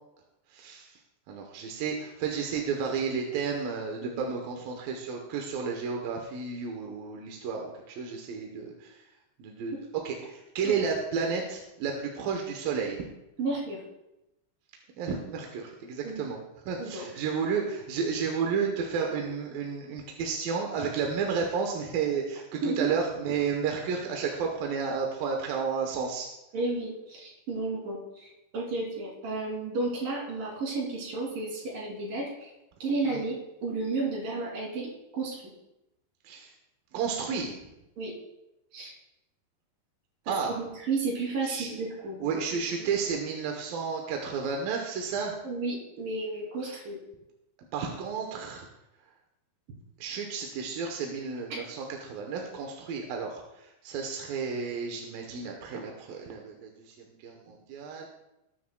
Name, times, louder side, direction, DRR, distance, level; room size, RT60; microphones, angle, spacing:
voice 1, 0.5-1.0 1.3-9.0 9.4-9.7 10.0-13.0 15.0-16.4 16.7-26.3 33.1-33.2 36.2-36.5 36.9-37.6 40.3-40.6 41.4-41.8 42.2-45.3 47.7-48.7 50.0-58.1, right 5 dB, 70° right, 1 dB, 2.4 m, -32 dB
voice 2, 4.0-4.3 13.4-13.8 16.0-16.3 16.8-17.0 22.6-22.8 26.5-28.3 28.5-32.5 32.8-34.9 35.1-35.5 38.0-38.1 38.7-38.9 40.3-42.4 42.8-42.9 45.4-47.0, right 3 dB, 55° right, -4 dB, 4.6 m, -32 dB
18.5 x 9.6 x 2.3 m, 0.91 s
omnidirectional pair, 5.0 m